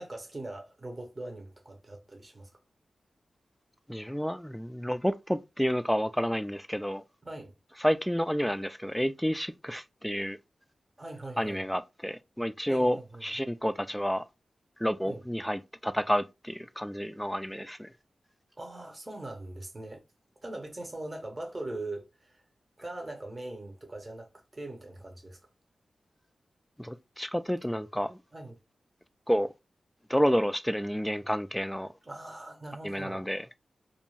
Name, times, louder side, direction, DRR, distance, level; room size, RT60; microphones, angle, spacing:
voice 1, 0.0-2.5 7.2-7.5 11.0-11.6 12.7-13.3 15.0-15.2 18.6-20.0 20.4-22.4 22.8-25.4 28.3-28.6 32.0-33.3, right 2 dB, 30° right, 0.8 m, -41 dB
voice 2, 3.9-7.0 7.8-10.4 11.4-14.2 14.8-17.9 26.8-28.2 29.3-29.5 30.1-31.9 32.8-33.5, equal, 5° left, 0.3 m, -30 dB
2.5 x 2.2 x 3.0 m
cardioid pair, 50°, 0 cm